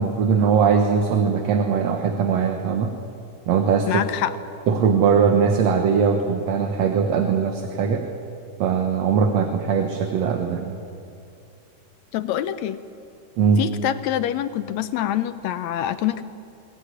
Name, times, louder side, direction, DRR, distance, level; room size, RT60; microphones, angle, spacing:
voice 1, 0.0-2.9 3.5-4.0 4.7-8.0 8.6-10.8 13.4-13.6, right 6 dB, 65° right, 5 dB, 2.3 m, -20 dB
voice 2, 3.9-4.3 12.1-12.8 13.6-16.2, left 11 dB, 75° left, 11 dB, 1.8 m, -25 dB
23.0 x 17.0 x 9.8 m, 2.5 s
omnidirectional pair, 3.4 m